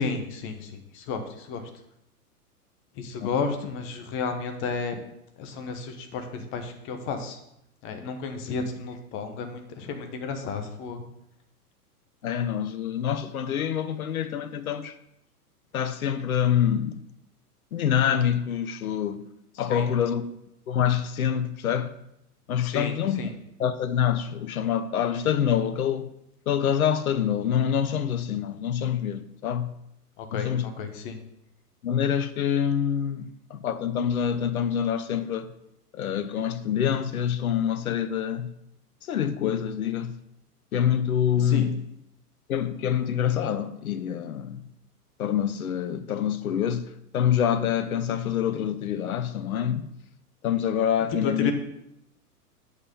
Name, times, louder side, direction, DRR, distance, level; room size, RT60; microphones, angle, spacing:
voice 1, 0.0-1.6 3.0-4.9 5.4-7.4 7.8-11.0 19.7-19.9 22.6-23.3 30.2-30.5 30.8-31.2 41.4-41.7 51.2-51.5, left 5 dB, 25° left, 1.1 m, -32 dB
voice 2, 12.2-14.9 15.7-17.0 17.7-19.2 19.6-20.2 20.7-21.9 22.5-23.3 23.6-26.1 26.5-29.7 30.3-30.7 31.8-35.5 35.9-38.5 39.1-40.2 40.7-41.8 42.5-44.7 45.2-46.9 47.1-49.9 50.4-51.5, left 9 dB, 65° left, 0.8 m, -26 dB
8.2 x 5.8 x 5.3 m
figure-of-eight pair, 105°, 47 cm